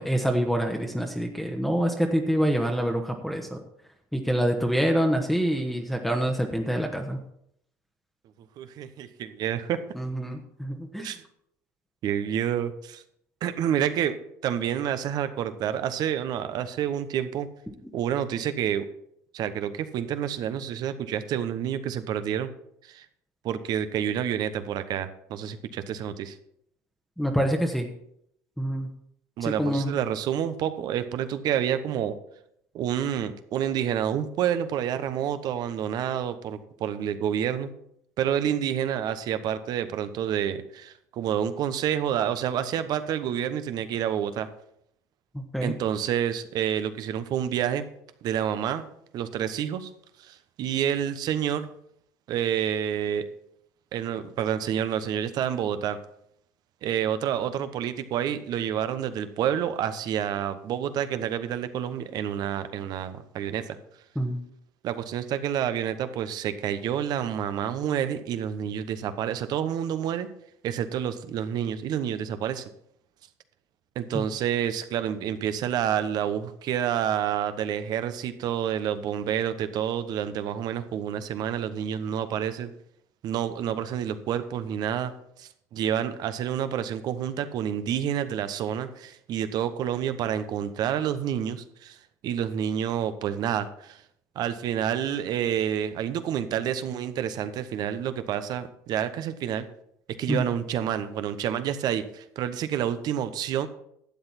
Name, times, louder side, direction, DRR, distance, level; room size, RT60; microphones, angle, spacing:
voice 1, 0.0-3.6 4.1-7.2 10.0-11.1 27.2-27.9 28.6-28.9 29.4-29.9 45.3-45.7 64.2-64.4 74.1-74.2 100.3-100.4, equal, ahead, 1 dB, 1.2 m, -26 dB
voice 2, 8.6-9.8 10.9-11.2 12.0-13.0 13.4-14.1 14.4-17.5 17.9-18.9 19.3-22.5 22.8-23.1 23.4-26.3 29.4-32.1 32.7-37.7 38.2-44.5 45.6-47.8 48.2-48.8 49.1-49.9 50.2-51.7 52.3-53.2 53.9-56.0 56.8-63.8 64.8-70.3 70.6-72.7 73.9-82.7 83.2-85.1 85.4-92.0 92.2-94.0 94.3-99.7 100.2-103.7, right 9 dB, 55° right, 11 dB, 1.0 m, -28 dB
12.0 x 7.9 x 4.3 m, 0.73 s
hypercardioid pair, 80°, 8 cm